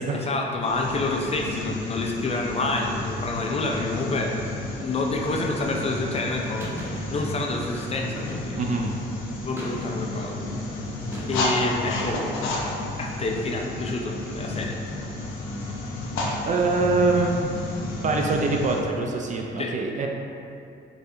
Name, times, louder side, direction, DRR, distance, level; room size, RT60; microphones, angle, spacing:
voice 1, 0.1-4.3 4.7-8.6 9.4-10.5 11.3-12.2 13.0-14.8 19.6-19.7, left 2 dB, 30° left, 0 dB, 0.4 m, -28 dB
sound 1, 0.6-18.8, left 2 dB, 80° left, 0.6 m, -32 dB
sound 2, 6.6-7.0 8.2-8.7 9.5-10.2 11.1-11.7, equal, 10° right, 0.8 m, -37 dB
voice 2, 8.6-8.9 16.5-17.5 18.0-20.1, right 3 dB, 40° right, 1 dB, 0.4 m, -24 dB
4.0 x 2.3 x 2.7 m, 2.6 s
cardioid pair, 90°, 20 cm